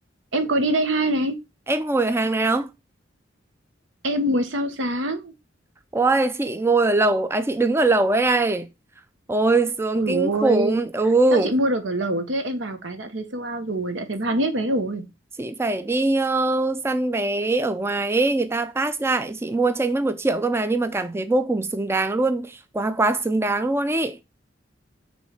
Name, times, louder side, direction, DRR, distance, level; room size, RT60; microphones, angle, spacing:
voice 1, 0.3-1.4 4.0-5.3 10.0-10.8 11.3-15.0, right 1 dB, 80° right, 1.1 m, -24 dB
voice 2, 1.7-2.7 5.9-8.7 9.3-11.5 15.4-24.2, right 2 dB, 15° right, 0.4 m, -22 dB
6.2 x 3.2 x 5.6 m
head